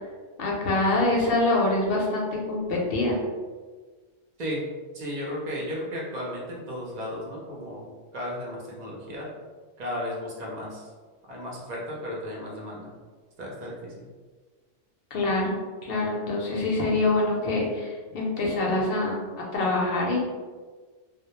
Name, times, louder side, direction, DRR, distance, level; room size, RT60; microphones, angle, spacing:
voice 1, 0.4-3.2 15.1-15.5 15.8-19.2 19.5-20.3, left 2 dB, 65° left, -2 dB, 0.7 m, -25 dB
voice 2, 4.9-9.3 9.8-10.9 11.3-12.9 13.4-14.1, equal, 50° right, -3 dB, 0.6 m, -34 dB
2.1 x 2.0 x 2.8 m, 1.4 s
omnidirectional pair, 1.2 m